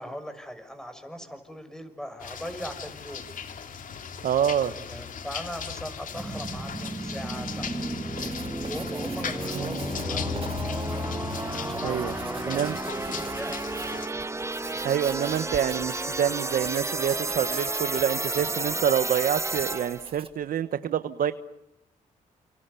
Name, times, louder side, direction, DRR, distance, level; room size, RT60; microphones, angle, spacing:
voice 1, 0.0-3.3 4.9-8.4 8.7-10.7 11.6-13.6, equal, 5° left, 9 dB, 6.5 m, -40 dB
sound 1, 2.2-14.1, left 6 dB, 65° left, 2.9 m, -36 dB
voice 2, 4.2-4.7 9.5-9.8 11.8-12.1 12.5-12.8 14.8-21.3, right 9 dB, 75° right, 11 dB, 1.2 m, -27 dB
sound 2, 6.1-20.1, right 2 dB, 20° right, 1.2 m, -32 dB
Writing, 8.1-20.4, right 4 dB, 40° right, 2.9 m, -45 dB
29.5 x 28.5 x 7.0 m, 0.80 s
cardioid pair, 75°, 15 cm